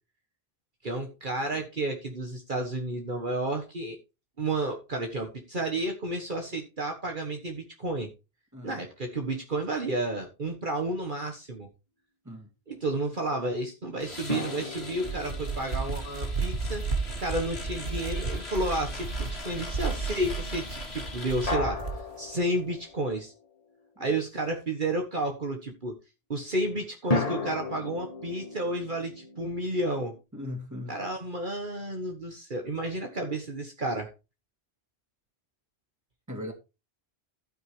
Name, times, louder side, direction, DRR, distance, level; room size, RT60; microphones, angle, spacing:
voice 1, 0.8-4.0 4.4-8.1 8.6-11.7 12.7-16.9 17.2-21.8 22.2-23.3 24.0-25.9 26.3-30.2 30.9-34.1, right 2 dB, 50° right, 1.7 m, -31 dB
sound 1, 14.0-21.6, left 3 dB, 80° left, 2.5 m, -42 dB
sound 2, 14.3-17.6 21.5-23.5 27.1-30.2, left 3 dB, 35° left, 1.6 m, -35 dB
sound 3, 14.8-22.0, right 4 dB, 85° right, 2.4 m, -33 dB
voice 2, 30.3-31.0 36.3-36.5, left 1 dB, 15° right, 2.8 m, -38 dB
12.5 x 9.0 x 3.3 m
omnidirectional pair, 1.0 m